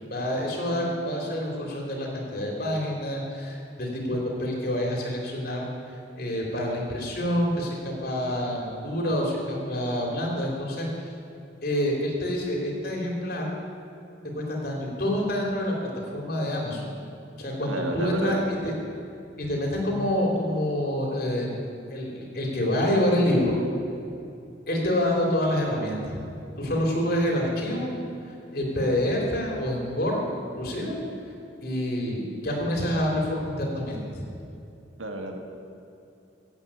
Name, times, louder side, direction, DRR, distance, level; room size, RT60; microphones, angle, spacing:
voice 1, 0.1-5.7 6.2-11.1 11.6-13.5 14.3-16.9 17.4-18.7 19.4-21.6 21.9-23.6 24.7-26.2 26.6-27.9 28.2-30.2 30.6-30.9 31.6-34.2, left 1 dB, 50° left, -1 dB, 3.2 m, -27 dB
voice 2, 0.7-1.1 17.7-18.4 35.0-35.4, right 2 dB, 85° right, 3 dB, 2.0 m, -32 dB
16.0 x 8.6 x 8.7 m, 2.7 s
head